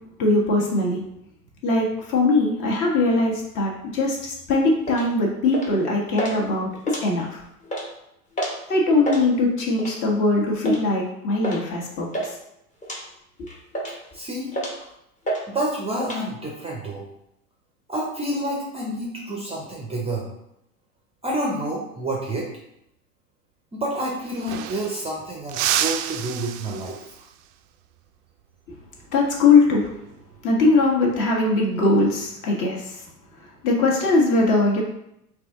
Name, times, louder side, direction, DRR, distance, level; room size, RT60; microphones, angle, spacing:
voice 1, 0.2-1.0 1.6-7.4 8.7-12.2 13.4-13.5 29.1-29.9 30.4-33.0 33.6-34.8, left 3 dB, 40° left, -2 dB, 1.4 m, -21 dB
sound 1, 4.9-5.1 5.5-5.8 6.1-6.4 6.8-7.3 7.6-7.9 8.4-8.6 8.9-9.2 9.8-10.1 10.6-10.8 11.4-11.6 11.9-12.3 12.8-13.0 13.5-14.1 14.5-14.9 15.3-15.4 15.7-16.2, right 1 dB, 15° left, 0.9 m, -29 dB
voice 2, 14.1-14.5 15.5-17.0 17.9-20.3 21.2-22.5 23.7-27.0, right 1 dB, 15° right, -2 dB, 0.6 m, -28 dB
sound 2, 23.9-24.0 24.2-25.1 25.5-27.3 29.8-30.0 31.5-31.9, right 11 dB, 60° right, 0.5 m, -29 dB
4.0 x 2.8 x 3.5 m, 0.79 s
hypercardioid pair, 110°, 46 cm